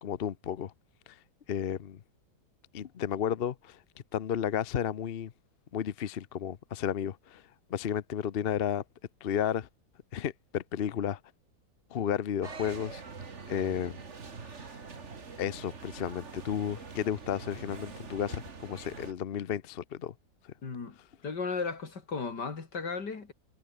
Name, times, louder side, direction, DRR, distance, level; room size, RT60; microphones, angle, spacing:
voice 1, 0.0-0.7 1.5-2.0 2.7-3.8 4.1-5.3 5.7-7.4 7.7-8.8 9.2-9.7 10.1-11.2 11.9-13.0 13.5-14.0 15.4-20.1, left 9 dB, 50° left, 0.8 m, -32 dB
sound 1, 12.4-19.1, right 5 dB, 45° right, 2.2 m, -44 dB
voice 2, 20.6-21.0 21.2-23.3, left 4 dB, 80° left, 3.5 m, -35 dB
omnidirectional pair, 1.8 m